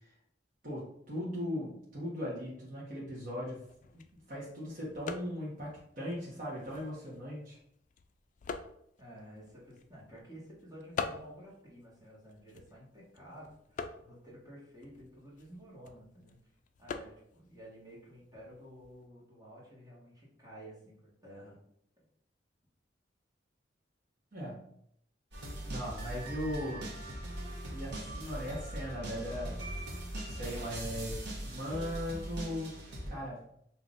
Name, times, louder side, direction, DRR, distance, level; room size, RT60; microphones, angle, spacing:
voice 1, 0.6-3.6 4.3-7.6 24.3-24.7 25.6-27.0 27.7-29.6 30.2-32.7 33.1-33.5, equal, 50° right, -7 dB, 1.2 m, -38 dB
sound 1, 3.5-19.1, left 5 dB, 45° left, 0.3 m, -47 dB
voice 2, 9.0-16.4 16.8-20.9 21.2-21.5, equal, 20° right, -7 dB, 1.6 m, -52 dB
sound 2, 25.3-33.1, right 1 dB, 65° right, 1.0 m, -40 dB
5.4 x 2.9 x 2.5 m, 0.72 s
head